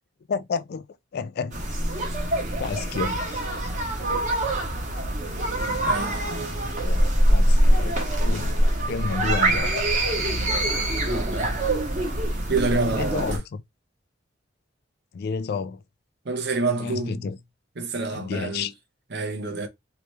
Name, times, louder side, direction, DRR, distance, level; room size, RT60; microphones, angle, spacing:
voice 1, 0.3-0.9 1.1-1.6 2.6-3.4 6.6-9.9 10.2-10.3 11.1-11.5 13.0-13.4 15.1-15.8 16.8-17.4 18.1-18.7, left 5 dB, 50° left, 0.3 m, -31 dB
sound 1, 1.5-13.4, right 1 dB, 40° right, 1.1 m, -24 dB
voice 2, 5.8-6.2 8.6-8.7 11.0-11.6 12.5-13.2 16.2-17.3 17.8-18.7 19.1-19.7, right 3 dB, 55° right, 0.8 m, -27 dB
3.2 x 2.9 x 3.1 m
head